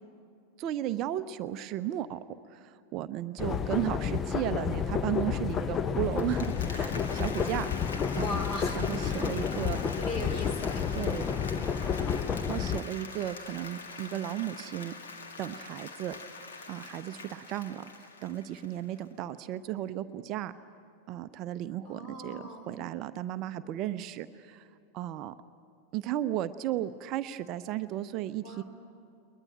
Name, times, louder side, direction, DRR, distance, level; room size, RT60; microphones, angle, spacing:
voice 1, 0.6-2.2 2.5-7.7 8.1-8.4 8.7-9.8 10.9-11.2 12.5-14.9 15.4-16.2 16.7-17.8 18.2-20.5 21.1-24.7 24.9-25.3 25.9-28.6, right 12 dB, 40° right, 12 dB, 0.6 m, -34 dB
sound 1, 3.4-12.8, left 7 dB, 25° left, 0.7 m, -30 dB
Applause, 6.0-19.0, left 4 dB, 65° left, 1.9 m, -44 dB
voice 2, 8.2-9.2 10.0-10.9 21.8-22.7 28.4-28.6, left 1 dB, 40° left, 5 dB, 4.1 m, -38 dB
21.5 x 20.5 x 8.9 m, 2.4 s
figure-of-eight pair, 90°, 0 cm